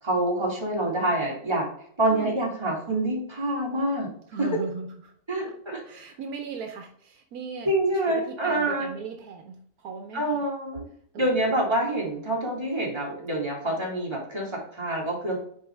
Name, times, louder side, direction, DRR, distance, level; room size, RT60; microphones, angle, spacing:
voice 1, 0.0-1.7 2.0-4.1 4.4-4.5 5.3-5.8 7.6-8.9 10.1-10.9 11.2-15.4, right 1 dB, 15° right, -3 dB, 2.2 m, -26 dB
voice 2, 2.1-2.4 4.3-5.1 5.8-7.7 7.9-10.4 11.1-11.6, right 5 dB, 70° right, 5 dB, 1.2 m, -38 dB
6.4 x 4.7 x 3.3 m, 0.65 s
omnidirectional pair, 1.7 m